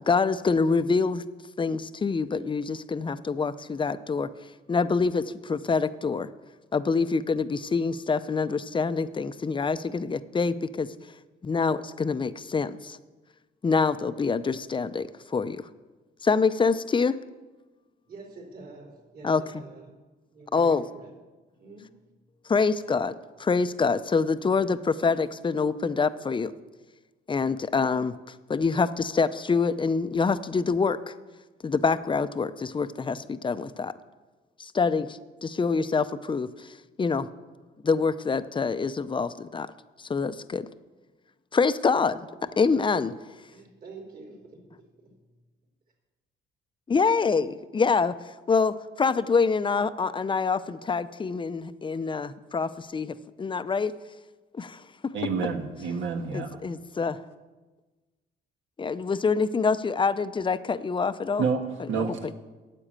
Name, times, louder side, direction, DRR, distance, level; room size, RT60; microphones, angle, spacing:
voice 1, 0.0-1.2 1.6-4.3 4.7-6.3 6.7-10.9 11.4-13.0 13.6-15.7 16.2-17.2 19.2-19.4 20.5-20.8 22.5-23.1 23.4-26.5 27.3-28.1 28.5-31.1 31.6-33.9 34.6-37.3 37.8-39.7 40.0-40.7 41.5-42.3 42.6-43.1 46.9-48.2 48.5-53.9 54.5-55.1 56.3-57.2 58.8-61.4, left 4 dB, 25° left, 13 dB, 0.6 m, -26 dB
voice 2, 18.1-19.9 20.3-21.1 21.6-21.9 42.7-43.0 43.5-45.1, right 3 dB, 50° right, 0 dB, 3.8 m, -46 dB
voice 3, 55.1-56.6 61.4-61.6 61.9-62.2, right 5 dB, 75° right, 4 dB, 1.6 m, -28 dB
9.8 x 7.7 x 8.9 m, 1.2 s
cardioid pair, 90°, 20 cm